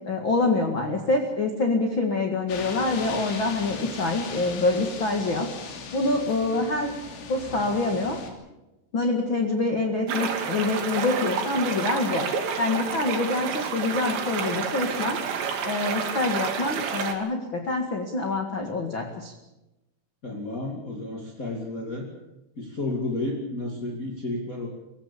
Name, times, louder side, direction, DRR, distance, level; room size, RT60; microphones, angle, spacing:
voice 1, 0.0-5.5 5.7-6.9 7.3-8.2 8.9-12.3 12.6-15.2 15.6-19.3, left 2 dB, 45° left, 4 dB, 1.5 m, -26 dB
sound 1, 2.5-8.3, left 5 dB, 85° left, 5.3 m, -38 dB
sound 2, 10.1-17.1, right 6 dB, 70° right, 4.4 m, -29 dB
voice 2, 20.2-22.1 22.6-24.7, left 2 dB, 30° left, 0 dB, 1.6 m, -31 dB
24.0 x 16.0 x 8.5 m, 0.99 s
omnidirectional pair, 5.4 m